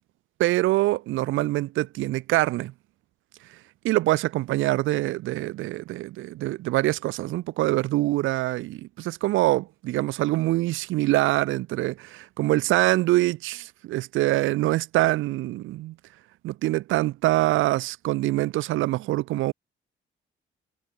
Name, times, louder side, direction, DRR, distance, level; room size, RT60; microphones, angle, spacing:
voice 1, 0.4-2.7 3.8-16.0 16.4-19.5, right 17 dB, 80° right, 0.5 m, -24 dB
cardioid pair, 90°, 20 cm